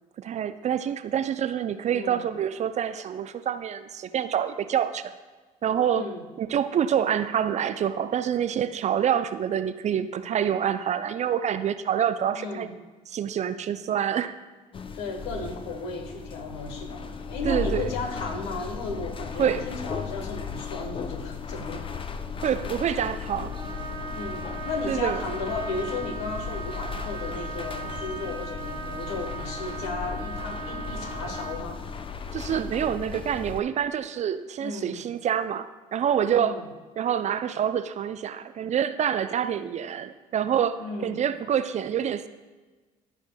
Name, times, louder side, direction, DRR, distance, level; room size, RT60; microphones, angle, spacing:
voice 1, 0.2-5.1 5.6-6.1 6.4-12.8 13.1-14.3 17.4-17.9 19.4-19.6 22.4-23.5 24.9-25.2 32.3-36.6 37.0-42.3, right 9 dB, 40° right, 11 dB, 0.5 m, -27 dB
voice 2, 1.9-2.3 5.9-6.2 12.3-12.7 14.9-22.1 24.1-31.8 34.6-35.0 36.3-36.7 40.8-41.2, left 3 dB, 70° left, 5 dB, 1.1 m, -35 dB
sound 1, 14.7-33.6, left 5 dB, 30° left, 0.6 m, -36 dB
Trumpet, 23.5-31.7, right 6 dB, 25° right, 1.5 m, -38 dB
14.0 x 4.9 x 2.3 m, 1.3 s
hypercardioid pair, 60°, 18 cm